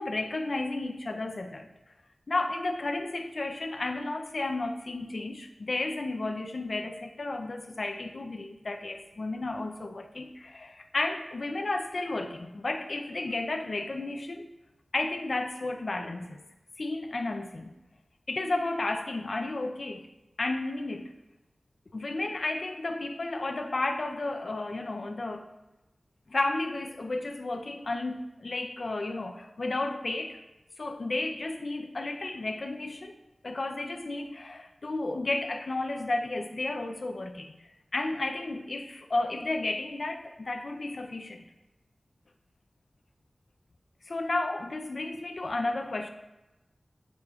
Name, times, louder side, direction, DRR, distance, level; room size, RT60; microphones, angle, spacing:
voice 1, 0.0-1.7 2.3-14.5 14.9-16.4 16.8-17.7 18.3-20.1 20.4-21.1 21.9-25.4 26.3-30.4 30.8-33.2 33.4-37.6 37.9-41.4 44.1-46.1, left 2 dB, 65° left, 5 dB, 0.5 m, -32 dB
8.8 x 7.0 x 2.4 m, 1.0 s
wide cardioid pair, 70°, 0 cm